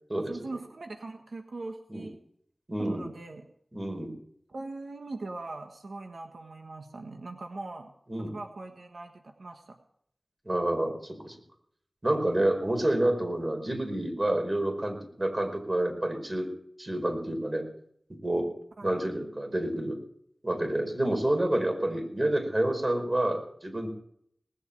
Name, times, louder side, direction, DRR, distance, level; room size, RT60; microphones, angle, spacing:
voice 1, 0.2-2.2 2.8-3.5 4.5-9.8 18.8-18.9, right 2 dB, 85° right, 4 dB, 1.5 m, -41 dB
voice 2, 2.7-3.0 3.7-4.1 8.1-8.3 10.4-11.3 12.0-16.5 16.8-17.6 18.2-18.5 18.8-20.0 20.4-23.9, right 1 dB, 35° right, 4 dB, 5.0 m, -28 dB
19.0 x 8.0 x 8.8 m, 0.69 s
wide cardioid pair, 40°, 0 cm